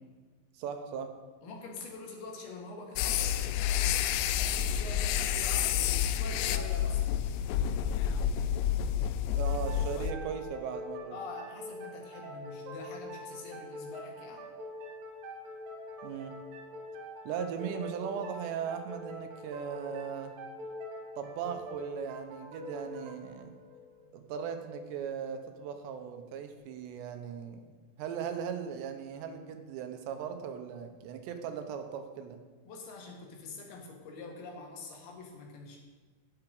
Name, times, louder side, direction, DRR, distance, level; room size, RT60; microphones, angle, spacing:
voice 1, 0.5-1.1 9.3-11.2 16.0-16.4 17.3-20.3 21.2-23.5 24.1-27.6 28.0-32.4, right 7 dB, 85° right, 7 dB, 3.1 m, -38 dB
voice 2, 1.4-4.0 4.4-5.7 6.1-7.1 11.1-14.5 32.6-35.8, left 3 dB, 70° left, 0 dB, 3.3 m, -45 dB
sound 1, 3.0-10.1, left 9 dB, 85° left, 2.7 m, -29 dB
sound 2, 9.4-24.8, left 1 dB, 60° right, 3.1 m, -44 dB
16.5 x 5.9 x 5.2 m, 1.4 s
omnidirectional pair, 5.0 m